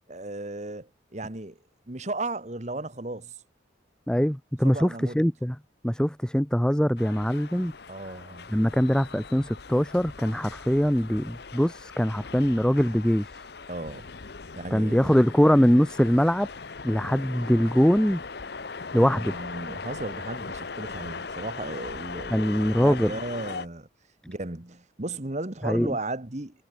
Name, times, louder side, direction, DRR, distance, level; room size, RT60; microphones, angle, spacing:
voice 1, 0.1-1.6 1.9-3.4 4.6-5.2 7.9-8.6 13.7-14.1 14.5-15.1 19.1-23.9 24.3-26.6, right 2 dB, 35° right, 1.5 m, -35 dB
voice 2, 4.1-5.6 5.8-7.7 8.5-13.3 14.7-16.5 16.8-18.2 18.9-19.4 22.3-23.1 25.6-25.9, equal, 5° left, 0.6 m, -22 dB
sound 1, 7.0-23.7, left 4 dB, 55° left, 0.9 m, -40 dB
head